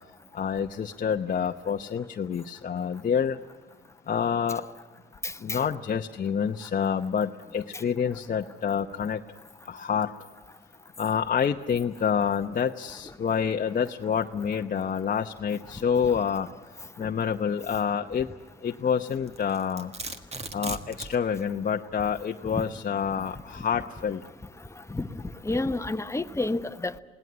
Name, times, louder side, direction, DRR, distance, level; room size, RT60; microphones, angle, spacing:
voice 1, 0.3-3.4 4.1-4.7 5.4-9.2 9.7-10.1 11.0-16.5 17.0-18.3 18.6-19.9 20.5-24.2, left 7 dB, 45° left, 0.9 m, -27 dB
voice 2, 5.2-5.6 17.0-17.1 22.5-22.6 24.9-27.0, left 2 dB, 15° left, 1.0 m, -30 dB
Domestic sounds home sounds, 19.3-21.2, right 3 dB, 30° right, 1.7 m, -37 dB
20.5 x 17.5 x 9.7 m
cardioid pair, 90°, 20 cm